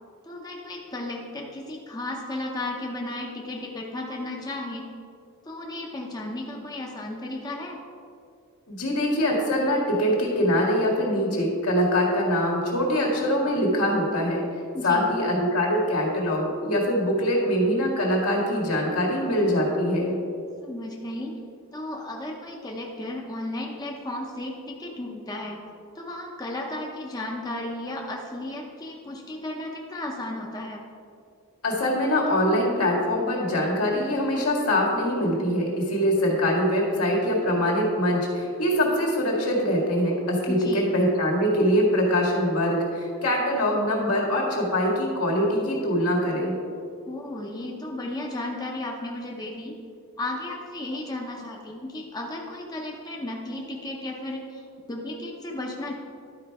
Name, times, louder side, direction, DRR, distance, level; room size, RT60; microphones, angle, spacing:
voice 1, 0.2-4.8 5.4-7.8 14.7-15.1 20.6-21.4 21.7-25.6 25.9-30.8 40.5-40.9 47.1-49.8 50.2-55.9, left 1 dB, 15° left, -1 dB, 0.7 m, -34 dB
voice 2, 8.7-14.5 14.8-20.2 31.6-46.5, equal, 80° left, -2 dB, 1.9 m, -23 dB
11.5 x 4.5 x 4.7 m, 2.4 s
head